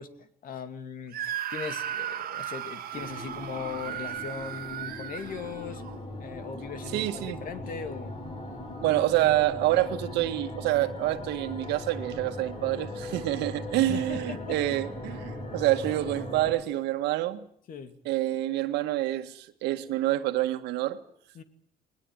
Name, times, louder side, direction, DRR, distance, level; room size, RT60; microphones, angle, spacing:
voice 1, 0.0-5.8 6.2-8.2 13.4-13.5 13.9-14.6 17.7-17.9 21.3-21.4, left 6 dB, 55° left, 2.6 m, -39 dB
Screaming, 1.1-6.0, right 11 dB, 60° right, 1.7 m, -36 dB
sound 1, 2.9-16.5, left 1 dB, 35° left, 8.0 m, -39 dB
voice 2, 6.9-7.4 8.8-17.4 18.1-21.0, right 15 dB, 85° right, 1.8 m, -27 dB
21.0 x 20.0 x 9.1 m
cardioid pair, 110°, 17 cm